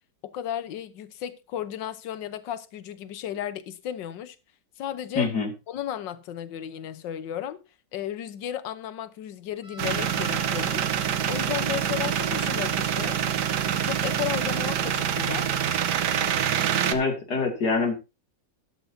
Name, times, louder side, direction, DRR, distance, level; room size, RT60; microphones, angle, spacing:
voice 1, 0.2-4.4 4.8-5.3 5.7-7.6 7.9-10.9 11.3-13.2 13.8-15.5, left 11 dB, 85° left, 1.6 m, -34 dB
voice 2, 5.1-5.5 16.9-17.9, left 4 dB, 65° left, 3.1 m, -25 dB
sound 1, 9.6-16.2, left 1 dB, 40° left, 3.5 m, -47 dB
sound 2, 9.8-16.9, right 9 dB, 70° right, 1.4 m, -26 dB
13.0 x 12.0 x 2.7 m
omnidirectional pair, 1.9 m